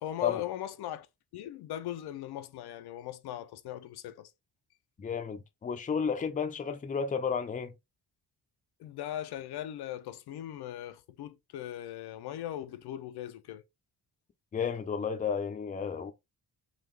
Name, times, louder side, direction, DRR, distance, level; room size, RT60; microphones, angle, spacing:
voice 1, 0.0-1.1 1.3-4.3 8.8-13.6, left 12 dB, 80° left, 0.5 m, -39 dB
voice 2, 5.0-7.7 14.5-16.1, left 6 dB, 20° left, 0.5 m, -32 dB
3.7 x 2.3 x 3.1 m
wide cardioid pair, 145°, 38 cm